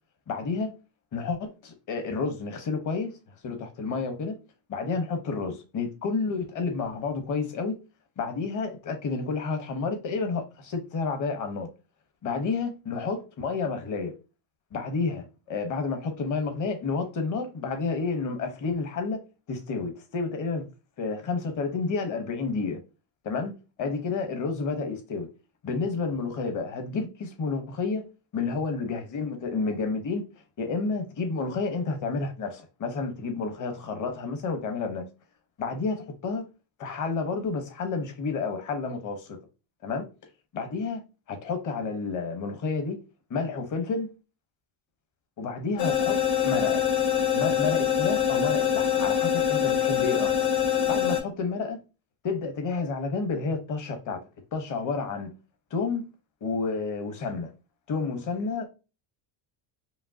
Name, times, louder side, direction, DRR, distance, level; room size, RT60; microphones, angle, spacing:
voice 1, 0.3-0.8 1.1-3.2 3.4-4.4 4.7-7.8 8.2-11.7 12.2-14.1 14.7-19.2 19.5-20.7 21.0-22.8 23.2-23.5 23.8-25.3 25.6-28.0 28.3-30.2 30.6-35.1 35.6-36.5 36.8-39.4 39.8-40.0 40.5-43.0 43.3-44.1 45.4-46.9 47.3-50.3 50.9-51.8 52.2-54.2 54.5-55.3 55.7-56.1 56.4-57.5 57.9-58.7, left 4 dB, 40° left, 1.0 m, -30 dB
sound 1, 45.8-51.2, left 9 dB, 65° left, 2.3 m, -24 dB
5.1 x 2.7 x 2.7 m
cardioid pair, 160°, 49 cm